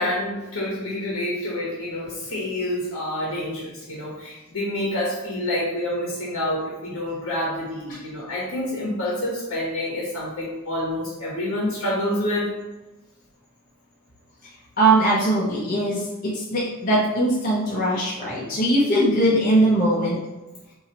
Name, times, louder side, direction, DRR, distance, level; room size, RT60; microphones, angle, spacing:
voice 1, 0.0-12.5, left 1 dB, 70° left, -6 dB, 1.2 m, -27 dB
voice 2, 14.8-20.2, right 1 dB, 40° left, -6 dB, 0.8 m, -20 dB
5.7 x 2.8 x 3.0 m, 1.1 s
head